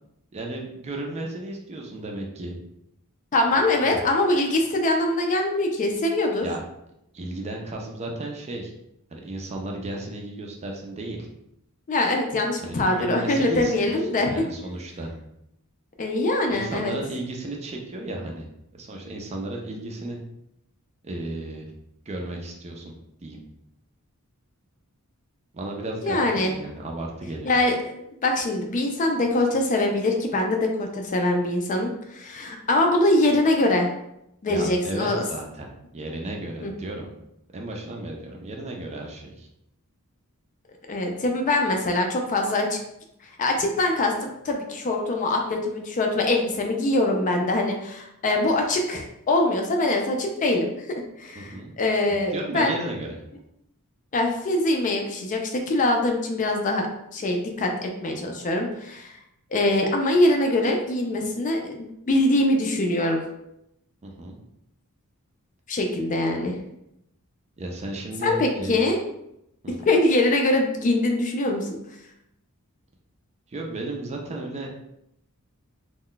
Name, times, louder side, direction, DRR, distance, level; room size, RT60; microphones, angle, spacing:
voice 1, 0.3-2.6 3.9-4.0 6.4-6.6 7.1-8.7 9.1-11.3 12.6-13.9 14.2-15.1 16.5-18.5 18.7-20.2 21.0-21.7 22.1-22.9 23.2-23.4 25.5-27.5 34.5-37.1 37.5-39.5 51.4-51.7 52.1-53.2 64.0-64.4 67.6-68.8 69.6-69.7 73.5-74.7, right 2 dB, 30° right, 1 dB, 0.4 m, -34 dB
voice 2, 3.3-6.5 11.9-14.4 16.0-16.9 26.0-26.5 27.4-33.9 34.4-35.2 36.6-36.7 40.9-42.8 43.4-52.8 54.1-56.9 57.1-59.2 59.5-63.2 65.7-66.6 68.2-69.0 69.9-71.7, left 2 dB, 35° left, 2 dB, 0.4 m, -23 dB
2.2 x 2.1 x 3.8 m, 0.82 s
head